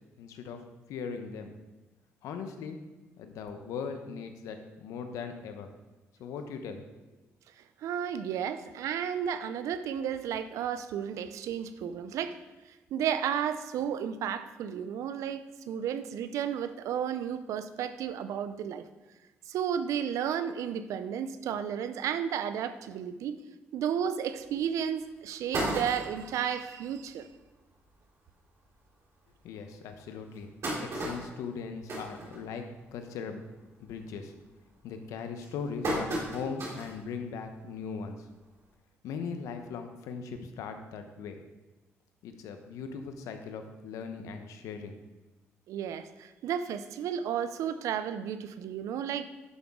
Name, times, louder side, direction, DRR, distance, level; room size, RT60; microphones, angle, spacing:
voice 1, 0.2-0.6 0.9-1.5 2.2-2.8 3.2-5.7 6.2-6.8 29.4-30.5 30.8-32.6 32.9-33.4 33.8-34.3 34.8-38.3 39.0-41.4 42.2-45.0, left 5 dB, 80° left, 6 dB, 0.9 m, -39 dB
voice 2, 7.8-12.4 12.9-18.8 19.5-23.4 23.7-27.3 45.7-49.2, right 8 dB, 75° right, 12 dB, 0.6 m, -33 dB
sound 1, 24.4-24.5 25.0-25.1 25.3-26.4 26.9-27.0 27.3-27.4 27.7-27.9 28.6-28.7 29.2-29.3 30.1-32.9 33.3-33.6 34.0-34.4 35.0-37.0 37.4-37.5 38.7-38.8, right 1 dB, 55° right, 3.4 m, -35 dB
11.0 x 6.0 x 3.7 m, 1.1 s
supercardioid pair, 65°, 5 cm